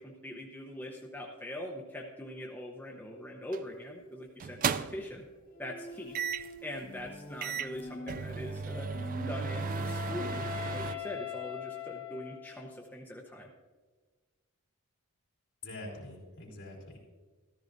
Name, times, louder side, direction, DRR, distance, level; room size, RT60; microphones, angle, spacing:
voice 1, 0.0-5.2 5.6-6.1 6.6-8.9 9.3-13.5, left 1 dB, 10° left, -1 dB, 0.8 m, -42 dB
sound 1, 3.5-3.8 4.4-5.2 6.1-6.6 7.1-7.2 7.4-10.9, right 6 dB, 40° right, 0.3 m, -35 dB
Bowed string instrument, 5.4-10.4, left 1 dB, 40° left, 1.3 m, -46 dB
Wind instrument woodwind instrument, 8.7-12.8, left 12 dB, 85° left, 2.8 m, -42 dB
voice 2, 15.6-17.0, left 2 dB, 55° left, -4 dB, 3.4 m, -44 dB
14.0 x 13.5 x 2.6 m, 1.4 s
head